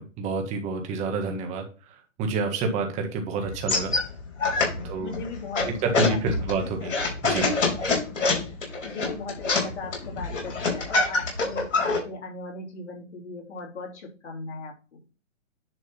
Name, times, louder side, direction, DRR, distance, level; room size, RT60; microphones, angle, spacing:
voice 1, 0.0-1.6 2.2-3.9 4.8-5.1 5.6-6.9 7.2-7.5, right 4 dB, 20° right, 4 dB, 1.6 m, -28 dB
sound 1, 3.4-12.0, left 3 dB, 90° left, 3.9 m, -26 dB
voice 2, 4.4-6.2 8.1-8.5 8.8-15.0, left 3 dB, 65° left, 1 dB, 3.1 m, -38 dB
10.0 x 3.9 x 5.4 m, 0.35 s
hypercardioid pair, 150°, 37 cm